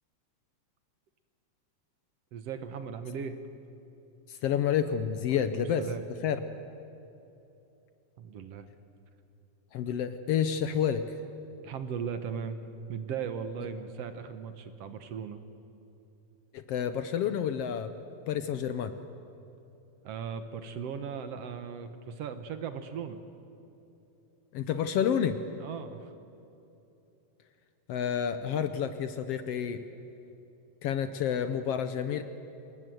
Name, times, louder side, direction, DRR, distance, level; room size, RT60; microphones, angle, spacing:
voice 1, 2.3-3.4 5.3-6.0 8.2-8.7 11.6-12.6 12.9-15.4 20.0-23.2 25.6-26.1, right 7 dB, 65° right, 9 dB, 2.0 m, -38 dB
voice 2, 4.3-5.9 6.2-6.4 9.7-11.2 16.5-17.9 18.3-18.9 24.5-25.4 27.9-29.8 30.8-32.2, left 8 dB, 70° left, 10 dB, 1.6 m, -29 dB
26.5 x 20.5 x 7.8 m, 2.9 s
omnidirectional pair, 3.3 m